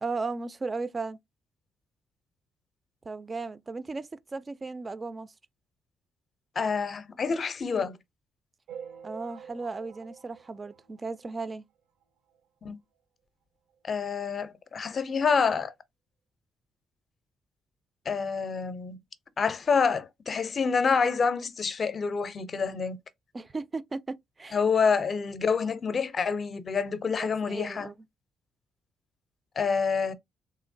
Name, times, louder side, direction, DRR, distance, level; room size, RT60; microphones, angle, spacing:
voice 1, 0.0-1.2 3.1-5.3 9.0-11.6 23.3-24.6 27.1-27.9, right 3 dB, 30° right, 0.3 m, -36 dB
voice 2, 6.6-8.0 12.6-12.8 13.8-15.7 18.1-19.0 19.4-23.0 24.5-27.9 29.6-30.1, left 5 dB, 45° left, 0.5 m, -27 dB
sound 1, 8.7-11.5 12.0-12.1 12.3-12.4 12.7-12.8 13.7-13.8 14.3-14.4, right 7 dB, 85° right, 0.6 m, -47 dB
3.1 x 2.9 x 2.5 m
cardioid pair, 90°, 0 cm